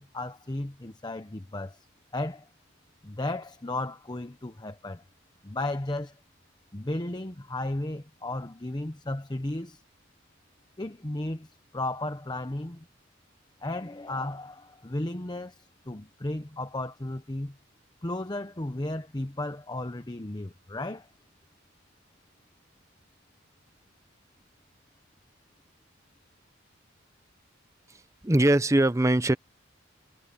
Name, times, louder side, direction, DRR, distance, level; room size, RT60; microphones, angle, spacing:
voice 1, 0.0-1.9 2.1-2.5 3.0-5.0 5.4-6.1 6.7-9.8 10.8-12.9 13.6-17.6 18.0-21.1, left 1 dB, 20° left, 0.9 m, -34 dB
voice 2, 27.9-29.3, right 1 dB, 15° right, 0.7 m, -22 dB
head